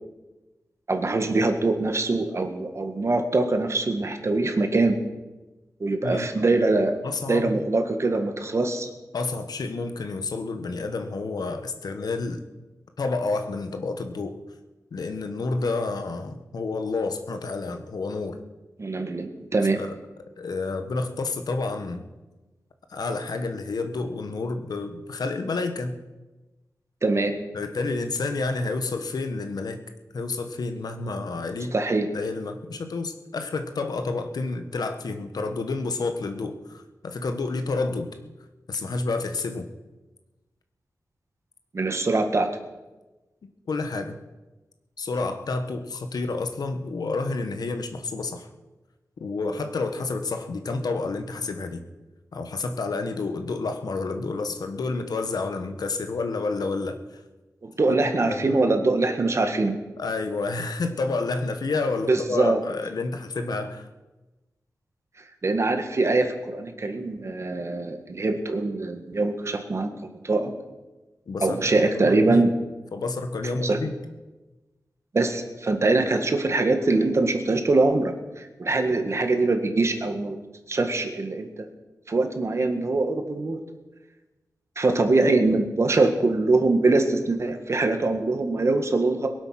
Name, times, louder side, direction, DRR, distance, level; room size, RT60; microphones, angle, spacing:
voice 1, 0.9-5.0 5.8-7.0 7.3-8.9 18.8-19.8 27.0-27.4 31.7-32.1 41.7-42.5 57.6-59.8 62.1-62.6 65.4-69.9 70.2-70.5 71.4-72.5 73.6-73.8 75.1-80.4 80.7-81.5 82.1-83.6 84.7-89.3, right 3 dB, 45° right, 6 dB, 1.6 m, -23 dB
voice 2, 7.0-7.6 9.1-12.4 13.0-14.4 14.9-18.4 19.8-19.9 20.4-22.0 22.9-26.0 27.5-29.8 30.1-31.7 32.1-38.1 38.7-39.7 43.7-44.1 45.0-48.5 49.2-51.8 52.3-57.2 57.9-58.6 60.0-63.9 71.3-72.5 72.9-74.0 85.2-85.3, left 3 dB, 80° left, 7 dB, 1.4 m, -29 dB
22.5 x 8.0 x 5.9 m, 1.1 s
wide cardioid pair, 125°, 7 cm